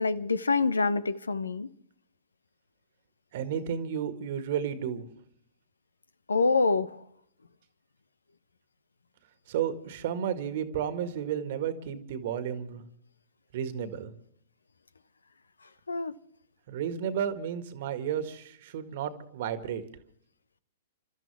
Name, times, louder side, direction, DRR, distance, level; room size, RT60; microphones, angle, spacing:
voice 1, 0.0-1.7 6.3-7.0 15.9-16.1, left 4 dB, 85° left, 0.9 m, -26 dB
voice 2, 3.3-5.1 9.5-12.8 13.5-14.1 16.7-19.8, right 8 dB, 55° right, 1.9 m, -32 dB
29.5 x 13.5 x 3.5 m
figure-of-eight pair, 110°, 0 cm